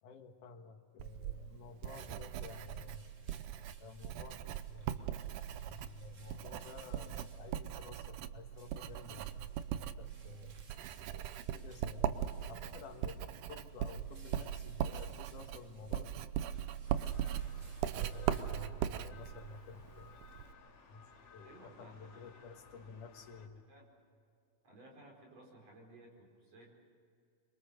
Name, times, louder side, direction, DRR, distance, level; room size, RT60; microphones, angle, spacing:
voice 1, 0.0-3.1 3.7-5.2 5.6-10.6 11.1-16.1 17.9-20.2 20.9-21.0 21.3-23.6, left 4 dB, 80° left, 5 dB, 3.1 m, -52 dB
Writing, 1.0-20.5, right 10 dB, 85° right, 2.4 m, -40 dB
sound 1, 1.3-19.1, right 3 dB, 35° right, 1.3 m, -62 dB
sound 2, 16.9-23.5, left 5 dB, 50° left, 3.0 m, -59 dB
voice 2, 21.4-22.0 22.3-22.4 22.8-23.0 23.7-23.9 24.6-26.7, right 1 dB, 55° right, -1 dB, 6.1 m, -57 dB
26.0 x 24.0 x 6.6 m, 2.4 s
omnidirectional pair, 3.5 m